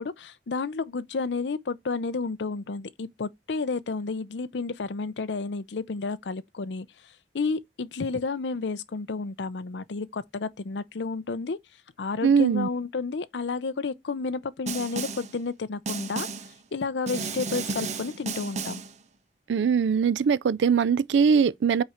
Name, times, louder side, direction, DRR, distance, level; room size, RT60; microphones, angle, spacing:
voice 1, 0.0-6.9 7.3-11.6 12.0-16.3 16.7-18.8, left 4 dB, 80° left, 0.6 m, -31 dB
voice 2, 12.2-12.7 19.5-21.8, right 6 dB, 90° right, 0.4 m, -21 dB
Snare drum, 14.7-15.3 15.9-16.5 17.1-18.9, right 4 dB, 40° right, 0.7 m, -33 dB
5.6 x 4.3 x 5.0 m
head